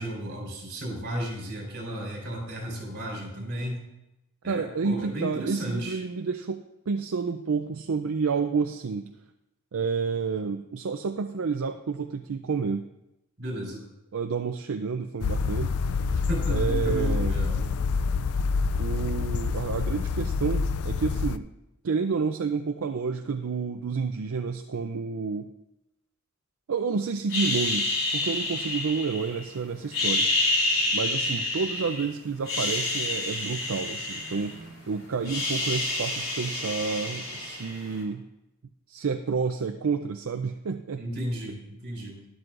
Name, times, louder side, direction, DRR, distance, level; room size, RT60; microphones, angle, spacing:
voice 1, 0.0-3.8 4.4-6.0 13.4-13.8 16.1-17.6 41.0-42.2, right 1 dB, 50° right, -1 dB, 3.9 m, -34 dB
voice 2, 4.5-9.1 9.7-12.9 14.1-16.0 16.5-17.4 18.8-21.5 21.8-25.5 26.7-30.3 30.9-34.6 34.9-38.2 38.9-41.0, right 5 dB, 75° right, 7 dB, 0.5 m, -30 dB
sound 1, 15.2-21.4, left 4 dB, 90° left, 0.4 m, -27 dB
sound 2, 27.3-29.4 29.8-32.0 32.4-34.8 35.0-37.9, left 2 dB, 70° left, 3.5 m, -28 dB
12.0 x 11.0 x 2.5 m, 0.90 s
head